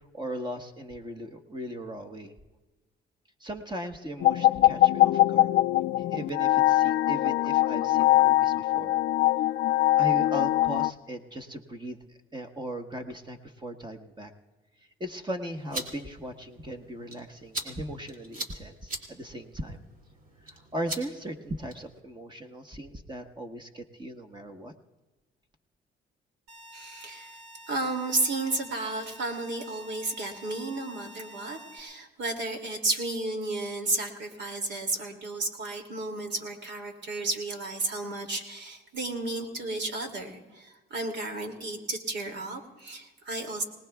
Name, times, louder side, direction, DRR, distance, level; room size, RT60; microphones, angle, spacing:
voice 1, 0.1-2.3 3.4-5.5 6.0-9.0 9.9-12.0 12.3-14.3 15.0-19.8 20.4-24.7, right 1 dB, 20° right, 5 dB, 1.2 m, -38 dB
sound 1, 4.2-10.9, left 15 dB, 65° left, 0.5 m, -22 dB
sound 2, 15.5-22.0, right 2 dB, 45° right, 2.7 m, -42 dB
sound 3, 26.5-31.8, right 1 dB, 85° right, 2.0 m, -49 dB
voice 2, 26.7-27.4 27.7-43.6, right 2 dB, 65° right, 4 dB, 2.6 m, -33 dB
25.5 x 18.5 x 2.3 m, 1.2 s
cardioid pair, 90°, 20 cm